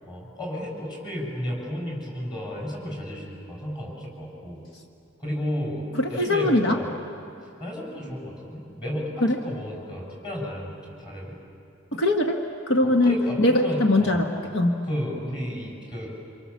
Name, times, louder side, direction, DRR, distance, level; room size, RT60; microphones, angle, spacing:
voice 1, 0.0-4.6 5.2-7.0 7.6-11.4 12.8-14.2 14.8-16.1, equal, 20° left, -2 dB, 7.5 m, -33 dB
voice 2, 6.0-6.8 9.2-9.4 11.9-12.4 12.7-14.8, left 1 dB, 80° left, 3 dB, 1.5 m, -21 dB
28.5 x 27.0 x 7.3 m, 2.5 s
head